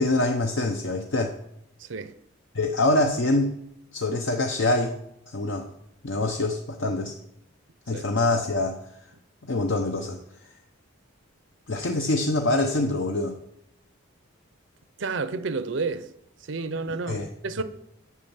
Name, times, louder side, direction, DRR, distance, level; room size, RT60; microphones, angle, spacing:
voice 1, 0.0-1.3 2.5-3.5 3.9-4.9 5.3-5.7 6.0-7.1 7.9-8.8 9.5-10.2 11.7-13.4 16.9-17.3, left 2 dB, 60° left, 0.7 m, -25 dB
voice 2, 1.8-2.1 7.9-8.1 15.0-16.1 16.5-17.6, right 4 dB, 60° right, 0.6 m, -30 dB
8.4 x 5.9 x 7.1 m
head